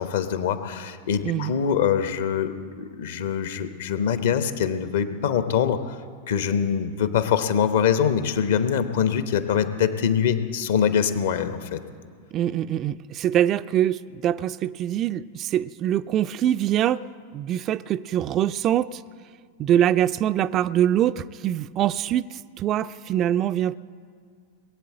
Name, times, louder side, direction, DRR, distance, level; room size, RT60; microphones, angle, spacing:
voice 1, 0.0-6.0 6.3-11.8, left 8 dB, 55° left, 11 dB, 0.9 m, -24 dB
voice 2, 1.2-1.5 12.3-17.0 17.3-19.0 19.6-23.8, right 11 dB, 35° right, 14 dB, 0.3 m, -24 dB
20.5 x 8.5 x 7.7 m, 2.1 s
figure-of-eight pair, 90°, 0 cm